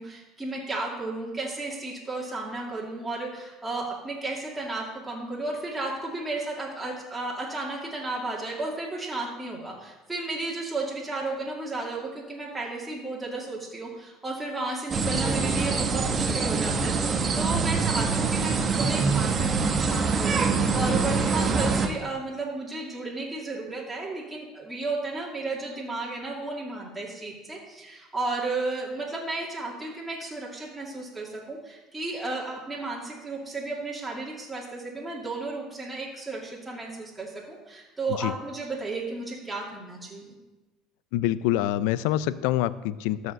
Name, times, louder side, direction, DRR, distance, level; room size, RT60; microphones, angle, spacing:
voice 1, 0.0-40.4, right 2 dB, 10° right, -4 dB, 2.4 m, -33 dB
sound 1, 14.9-21.9, right 4 dB, 30° right, 1.0 m, -24 dB
voice 2, 41.1-43.3, left 13 dB, 80° left, 17 dB, 0.4 m, -26 dB
13.0 x 4.9 x 6.4 m, 1.1 s
supercardioid pair, 110°, 0 cm